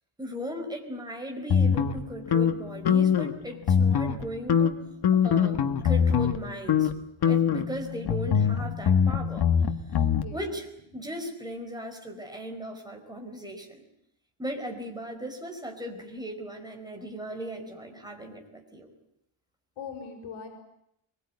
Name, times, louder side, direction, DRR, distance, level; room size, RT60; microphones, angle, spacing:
voice 1, 0.2-4.8 5.2-6.9 7.2-9.5 9.9-10.0 10.3-10.7 10.9-13.8 14.4-18.9, equal, 10° right, 3 dB, 4.7 m, -37 dB
sound 1, 1.5-3.4 3.6-4.2 4.5-6.4 6.7-6.9 7.2-10.2, left 7 dB, 50° left, 1.6 m, -23 dB
voice 2, 10.1-10.5 19.8-20.5, left 6 dB, 70° left, 3 dB, 5.5 m, -41 dB
24.0 x 22.5 x 9.7 m, 0.78 s
wide cardioid pair, 180°, 49 cm